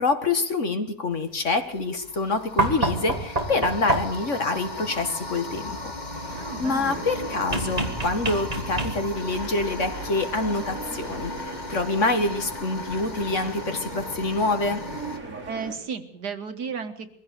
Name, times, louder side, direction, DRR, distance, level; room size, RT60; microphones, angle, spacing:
voice 1, 0.0-5.8 6.6-11.3 11.7-14.8, left 3 dB, 50° left, 7 dB, 2.2 m, -26 dB
sound 1, 1.1-1.3 1.8-15.2, left 2 dB, 25° left, 2.2 m, -37 dB
sound 2, 2.6-4.3 7.5-9.3 10.8-10.9, right 2 dB, 25° right, 2.7 m, -27 dB
sound 3, 6.3-15.7, right 3 dB, 55° right, 5.3 m, -40 dB
voice 2, 6.3-7.1 15.5-17.2, right 6 dB, 80° right, 8 dB, 2.2 m, -34 dB
22.5 x 16.0 x 8.4 m, 0.62 s
omnidirectional pair, 1.7 m